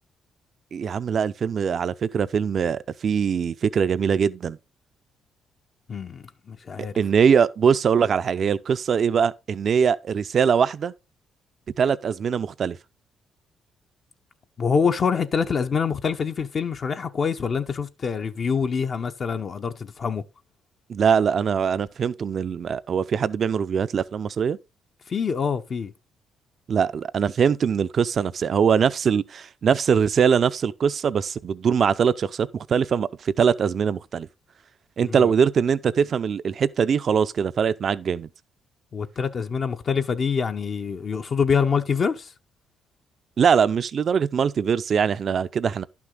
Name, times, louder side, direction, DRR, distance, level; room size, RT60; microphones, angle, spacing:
voice 1, 0.7-4.6 6.8-10.9 11.8-12.8 20.9-24.6 26.7-34.3 35.0-38.3 43.4-45.8, right 7 dB, 50° right, 0.6 m, -22 dB
voice 2, 5.9-7.0 14.6-20.2 25.1-25.9 35.0-35.3 38.9-42.3, left 6 dB, 45° left, 0.8 m, -25 dB
11.0 x 6.1 x 3.9 m
cardioid pair, 90°, 0 cm